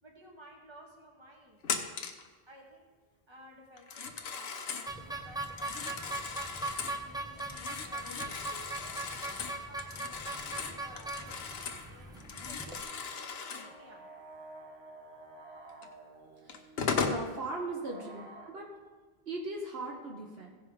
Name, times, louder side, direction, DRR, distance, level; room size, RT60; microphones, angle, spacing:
voice 1, 0.0-1.6 2.5-2.9 3.3-6.4 7.0-9.0 9.5-11.4 11.9-14.1, equal, 25° right, 0 dB, 1.6 m, -55 dB
Telephone, 1.6-2.3 3.8-4.9 5.4-7.0 7.4-11.9 12.2-13.7 15.8-15.9 16.5-17.2, left 5 dB, 70° left, 1.0 m, -37 dB
sound 1, 4.9-12.8, right 2 dB, 5° right, 0.5 m, -40 dB
sound 2, 10.2-18.5, right 2 dB, 85° right, 1.5 m, -53 dB
voice 2, 17.0-18.7 19.3-20.6, right 2 dB, 70° right, 0 dB, 1.4 m, -39 dB
16.0 x 5.6 x 4.8 m, 1.3 s
omnidirectional pair, 1.1 m